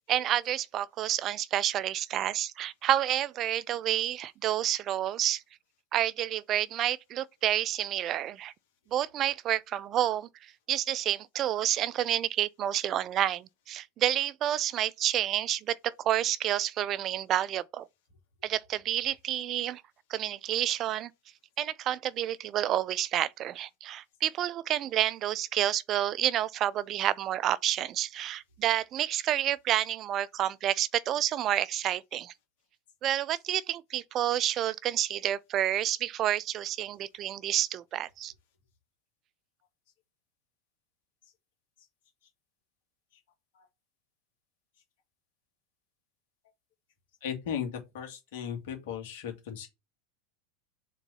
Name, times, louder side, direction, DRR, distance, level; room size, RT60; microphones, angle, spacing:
voice 1, 0.1-5.4 5.9-8.5 8.9-17.9 18.4-19.8 20.1-21.1 21.6-32.3 33.0-38.3, right 11 dB, 40° right, 0.4 m, -29 dB
voice 2, 47.2-49.7, left 8 dB, 65° left, 2.3 m, -36 dB
4.5 x 3.9 x 5.5 m
hypercardioid pair, 105°, 0 cm